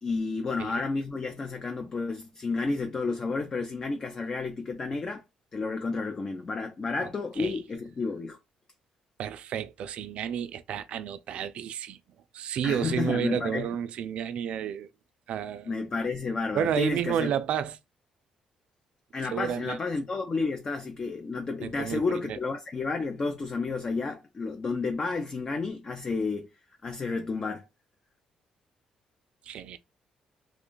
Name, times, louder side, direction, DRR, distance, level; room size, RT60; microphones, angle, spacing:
voice 1, 0.0-5.2 5.5-8.4 12.6-13.7 15.7-17.3 19.1-26.5 26.8-27.6, left 4 dB, 30° left, 0.4 m, -31 dB
voice 2, 9.2-12.0 12.3-14.9 15.3-15.7 16.5-17.8 19.3-19.8 21.6-22.4 29.5-29.8, right 9 dB, 65° right, 0.3 m, -31 dB
3.1 x 2.2 x 3.8 m
cardioid pair, 125°, 2 cm